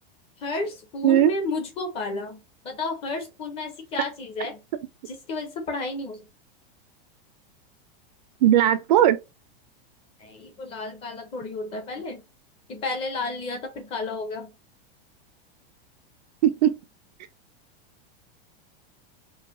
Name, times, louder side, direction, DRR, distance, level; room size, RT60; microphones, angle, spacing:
voice 1, 0.4-4.6 5.1-6.3 10.2-12.3 12.7-14.5, left 3 dB, 20° left, 0.6 m, -32 dB
voice 2, 8.4-9.2 16.4-16.7, right 11 dB, 50° right, 0.4 m, -18 dB
4.7 x 2.2 x 2.5 m
supercardioid pair, 170°, 29 cm